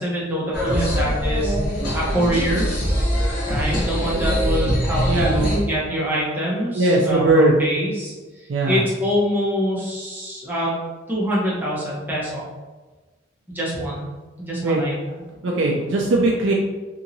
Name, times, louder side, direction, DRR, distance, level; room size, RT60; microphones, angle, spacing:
voice 1, 0.0-2.7 3.5-8.1 8.4-10.7 11.1-12.4 13.5-14.1 14.4-14.9, equal, 10° right, -6 dB, 0.7 m, -25 dB
sound 1, 0.5-5.6, equal, 50° left, 0.9 m, -22 dB
voice 2, 5.0-5.5 6.7-7.5 8.5-8.8 14.6-14.8 15.4-16.5, right 2 dB, 75° right, -2 dB, 0.4 m, -19 dB
2.9 x 2.7 x 2.6 m, 1.3 s
head